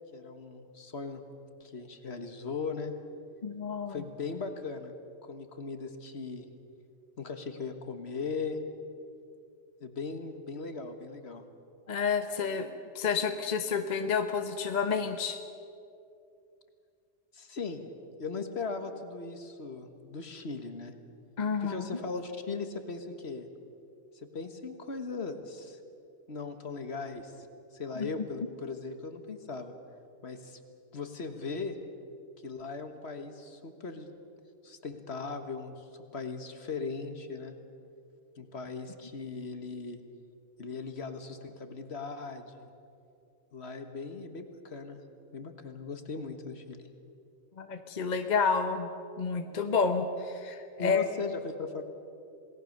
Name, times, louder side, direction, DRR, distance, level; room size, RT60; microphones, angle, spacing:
voice 1, 0.1-1.2 1.6-2.9 3.9-4.9 5.2-6.5 7.2-8.6 9.8-11.4 17.3-17.9 18.2-20.9 21.6-23.5 24.1-25.8 26.3-27.5 27.7-29.7 30.2-30.6 30.9-31.8 32.4-34.1 34.6-37.6 38.4-40.0 40.6-42.7 43.5-45.0 45.3-46.9 50.8-51.8, left 4 dB, 55° left, 7 dB, 1.8 m, -38 dB
voice 2, 3.4-4.0 11.9-15.4 21.4-21.9 28.0-28.1 47.6-48.9 49.2-51.0, left 5 dB, 35° left, 6 dB, 1.1 m, -30 dB
27.5 x 18.5 x 6.6 m, 2.6 s
omnidirectional pair, 1.3 m